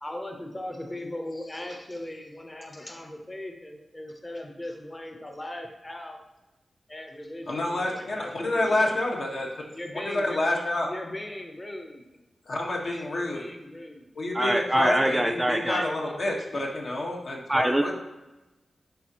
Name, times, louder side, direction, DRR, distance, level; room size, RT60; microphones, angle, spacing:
voice 1, 0.0-6.2 6.9-8.9 9.6-10.4 10.8-12.1 13.0-14.1 15.5-16.2, left 1 dB, 20° left, 3 dB, 0.8 m, -39 dB
voice 2, 7.5-9.7 9.9-10.9 12.4-13.4 14.1-17.9, left 1 dB, 65° left, -2 dB, 1.5 m, -28 dB
voice 3, 14.3-15.8 17.5-17.9, right 1 dB, 10° right, 5 dB, 0.4 m, -24 dB
11.0 x 3.9 x 3.0 m, 1.0 s
wide cardioid pair, 95°, 0 cm